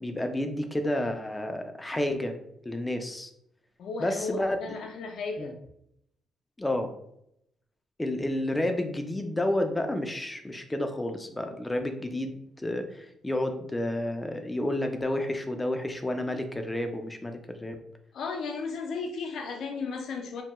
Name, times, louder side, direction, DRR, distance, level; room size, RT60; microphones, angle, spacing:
voice 1, 0.0-2.3 2.6-3.3 4.0-4.7 5.4-5.5 6.6-6.9 8.0-17.8, left 1 dB, 15° left, 6 dB, 0.4 m, -30 dB
voice 2, 3.8-5.6 18.1-20.4, left 4 dB, 70° left, 4 dB, 0.5 m, -35 dB
2.7 x 2.2 x 2.9 m, 0.76 s
cardioid pair, 90°, 0 cm